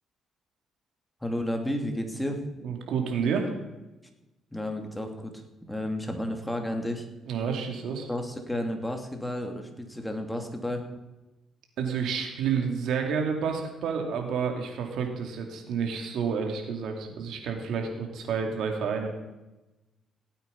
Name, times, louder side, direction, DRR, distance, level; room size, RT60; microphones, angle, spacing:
voice 1, 1.2-2.4 4.5-7.1 8.1-10.8, left 1 dB, 5° left, 4 dB, 2.6 m, -32 dB
voice 2, 2.6-3.5 7.3-8.1 11.8-19.1, right 6 dB, 75° right, 3 dB, 2.9 m, -29 dB
17.5 x 8.8 x 5.4 m, 1.0 s
cardioid pair, 90°, 0 cm